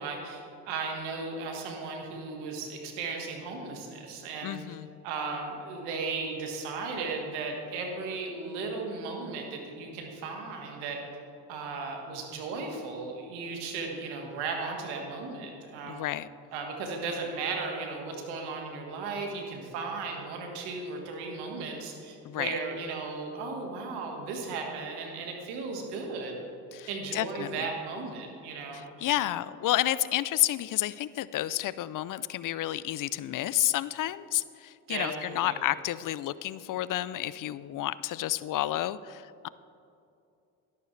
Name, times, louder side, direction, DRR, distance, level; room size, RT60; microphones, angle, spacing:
voice 1, 0.0-4.8 5.0-11.0 11.5-16.0 16.5-26.4 26.9-28.9 34.9-35.6, right 4 dB, 90° right, 2 dB, 1.7 m, -36 dB
voice 2, 4.4-4.9 15.8-16.3 22.2-22.5 26.7-27.7 29.0-39.5, left 14 dB, 55° left, 17 dB, 0.5 m, -30 dB
12.5 x 11.5 x 3.3 m, 2.6 s
supercardioid pair, 65°, 39 cm